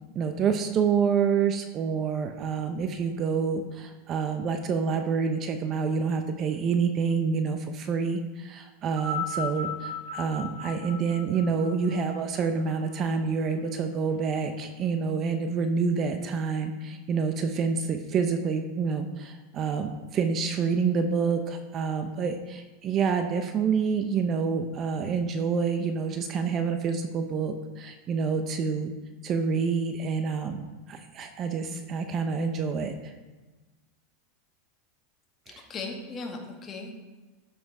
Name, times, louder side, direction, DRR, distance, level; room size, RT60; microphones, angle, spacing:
voice 1, 0.1-28.9 29.2-33.1 35.5-35.6, right 5 dB, 35° right, 7 dB, 0.9 m, -28 dB
sound 1, 8.9-13.4 14.3-14.4, left 3 dB, 50° right, 1.6 m, -36 dB
voice 2, 35.5-37.0, left 3 dB, 25° left, 1 dB, 2.0 m, -37 dB
13.0 x 6.1 x 4.7 m, 1.2 s
supercardioid pair, 140°, 0 cm